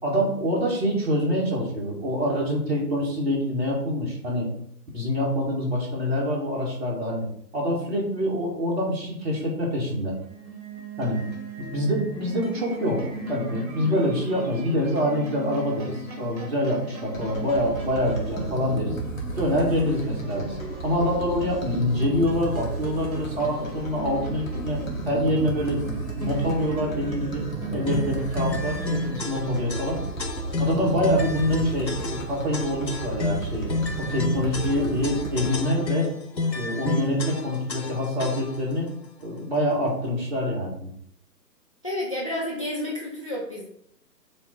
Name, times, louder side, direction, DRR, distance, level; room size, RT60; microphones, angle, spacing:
voice 1, 0.0-4.5 4.9-7.3 7.5-10.1 11.0-11.2 11.6-18.9 19.4-27.4 27.7-30.0 30.6-36.1 36.5-38.9 39.2-40.9, equal, 40° right, -3 dB, 2.2 m, -26 dB
sound 1, 9.9-29.2, right 2 dB, 55° right, 2.0 m, -38 dB
sound 2, 17.1-35.6, right 2 dB, 55° left, 1.5 m, -33 dB
sound 3, 27.9-38.7, left 3 dB, 85° left, 1.0 m, -30 dB
voice 2, 41.8-43.6, left 1 dB, 20° left, -3 dB, 0.6 m, -30 dB
7.2 x 3.5 x 4.1 m, 0.70 s
figure-of-eight pair, 140°, 50 cm